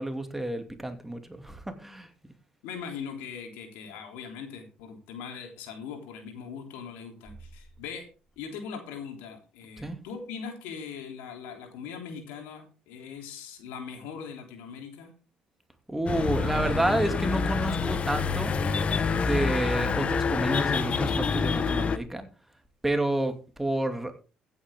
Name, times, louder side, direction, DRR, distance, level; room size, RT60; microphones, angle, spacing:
voice 1, 0.0-2.1 9.8-10.0 15.9-18.5 19.1-22.3 22.8-24.1, right 1 dB, 10° right, 6 dB, 2.6 m, -29 dB
voice 2, 2.6-8.1 8.4-15.1, left 6 dB, 85° left, 4 dB, 3.4 m, -40 dB
sound 1, 16.1-22.0, left 5 dB, 45° left, 1.4 m, -27 dB
15.0 x 9.3 x 3.7 m, 0.34 s
supercardioid pair, 80°, 3 cm